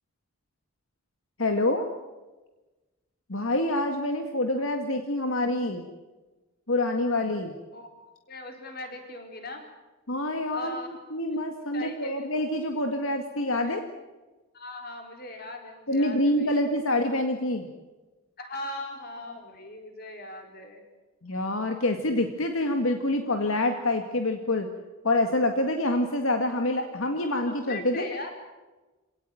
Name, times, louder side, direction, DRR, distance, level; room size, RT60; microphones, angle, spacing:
voice 1, 1.4-1.9 3.3-5.8 6.7-7.5 10.1-10.8 11.1-13.8 15.9-17.7 18.6-19.4 21.2-24.7 25.0-28.1, left 1 dB, 75° left, 5 dB, 2.0 m, -26 dB
voice 2, 8.3-9.6 10.5-11.0 11.3-11.4 11.7-12.4 12.7-12.8 13.6-13.8 14.5-16.7 18.4-20.9 27.5-28.3, left 1 dB, 45° left, 4 dB, 4.4 m, -40 dB
26.0 x 18.0 x 9.2 m, 1.2 s
head